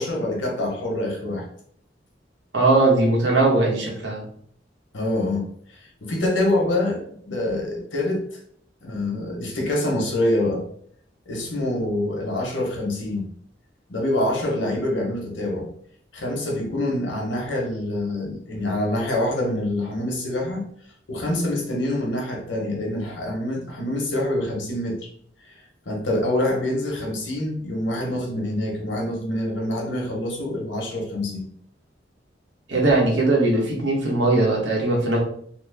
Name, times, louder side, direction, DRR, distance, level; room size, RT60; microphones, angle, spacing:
voice 1, 0.0-1.5 4.9-8.4 8.8-10.6 11.3-13.3 13.9-15.7 16.1-20.6 21.1-25.1 25.5-25.6 25.9-31.4, left 1 dB, 85° left, 0 dB, 0.9 m, -26 dB
voice 2, 2.5-4.2 32.7-35.2, right 2 dB, 75° right, -2 dB, 1.0 m, -19 dB
3.1 x 2.0 x 3.3 m, 0.62 s
head